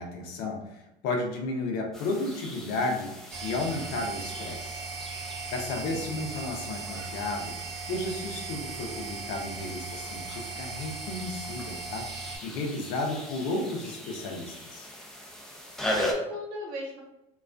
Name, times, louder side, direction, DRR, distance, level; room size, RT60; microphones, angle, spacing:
voice 1, 0.0-4.8 5.5-7.6 7.9-12.1 12.4-14.9, left 2 dB, 65° left, 2 dB, 0.6 m, -33 dB
sound 1, 1.9-16.1, left 1 dB, 5° left, 0.3 m, -40 dB
sound 2, 3.3-12.4, right 4 dB, 45° right, 0.6 m, -38 dB
voice 2, 5.7-6.2 15.9-17.0, left 2 dB, 75° right, -2 dB, 1.0 m, -38 dB
2.3 x 2.2 x 2.4 m, 0.91 s
supercardioid pair, 120°, 17 cm